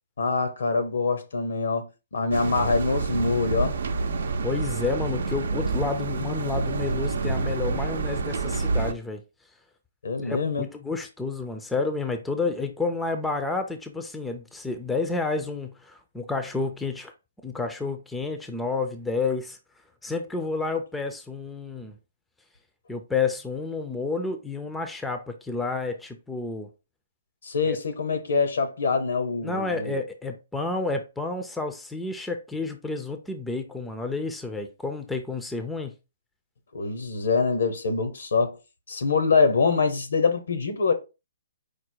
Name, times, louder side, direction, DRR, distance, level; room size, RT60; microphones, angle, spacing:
voice 1, 0.2-3.8 10.0-10.7 27.4-30.0 36.7-38.6 38.9-40.9, left 4 dB, 75° left, 1.0 m, -24 dB
sound 1, 2.3-8.9, right 3 dB, 75° right, 0.6 m, -28 dB
voice 2, 4.4-9.2 10.2-17.1 17.4-19.6 20.0-22.0 22.9-26.7 27.6-27.8 29.4-35.9, left 3 dB, 5° left, 0.5 m, -30 dB
4.9 x 2.1 x 4.5 m
hypercardioid pair, 155°, 0 cm